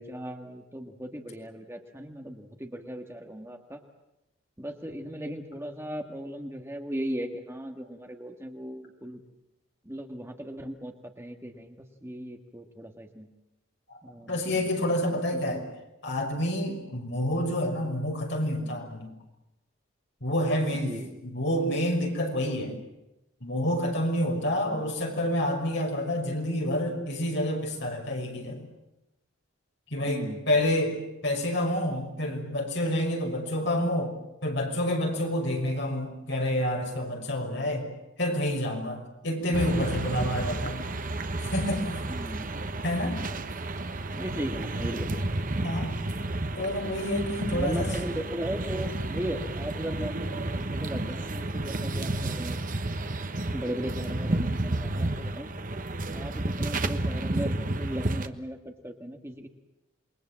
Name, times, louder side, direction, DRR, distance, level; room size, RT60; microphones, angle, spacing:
voice 1, 0.0-3.8 4.6-9.2 9.8-13.3 14.0-14.4 15.3-15.7 20.8-21.2 22.6-22.8 30.1-30.4 40.6-40.9 42.1-42.5 44.1-45.3 47.5-52.6 53.5-55.5 56.1-59.5, equal, 10° right, 4 dB, 1.7 m, -37 dB
voice 2, 14.3-15.7 16.0-19.1 20.2-21.0 21.2-22.8 23.4-28.7 29.9-34.1 34.4-37.9 38.2-40.8 41.5-41.9 42.8-43.2 45.6-45.9 46.6-47.9, left 1 dB, 60° left, 2 dB, 5.9 m, -28 dB
sound 1, 39.5-58.3, right 2 dB, 40° right, 1.2 m, -31 dB
28.0 x 22.0 x 7.6 m, 0.93 s
head